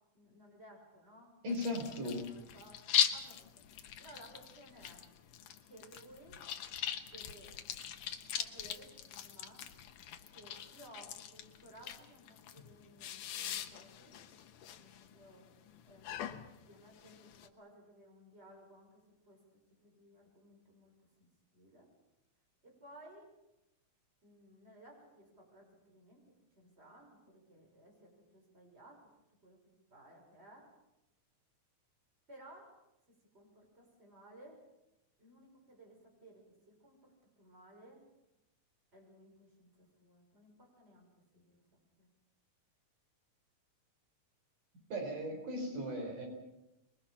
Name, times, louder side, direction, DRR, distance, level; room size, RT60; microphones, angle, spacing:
voice 1, 0.1-2.0 2.2-5.0 5.7-6.4 7.0-7.5 8.3-9.7 10.3-14.2 14.8-15.5 15.8-19.4 19.8-21.3 21.5-21.9 22.6-23.3 24.2-29.1 29.4-29.6 29.9-30.7 32.3-32.7 33.3-34.6 35.2-38.0 38.9-41.1 41.3-42.1, right 1 dB, 20° right, 1 dB, 6.3 m, -58 dB
voice 2, 1.4-2.2 44.9-46.3, left 1 dB, 80° right, 2 dB, 6.2 m, -37 dB
sound 1, 1.5-17.5, left 9 dB, 75° left, 2.6 m, -40 dB
26.0 x 22.0 x 5.9 m, 0.91 s
omnidirectional pair, 3.7 m